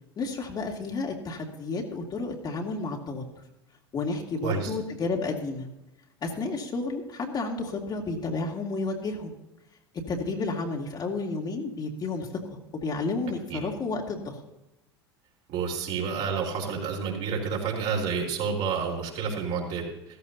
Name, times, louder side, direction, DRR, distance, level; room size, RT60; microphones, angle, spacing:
voice 1, 0.2-3.2 3.9-5.7 6.2-9.3 10.1-14.4, left 3 dB, 30° left, 0 dB, 2.5 m, -31 dB
voice 2, 15.5-19.8, right 6 dB, 50° right, -1 dB, 4.2 m, -29 dB
15.5 x 14.5 x 2.8 m, 0.91 s
hypercardioid pair, 80°, 13 cm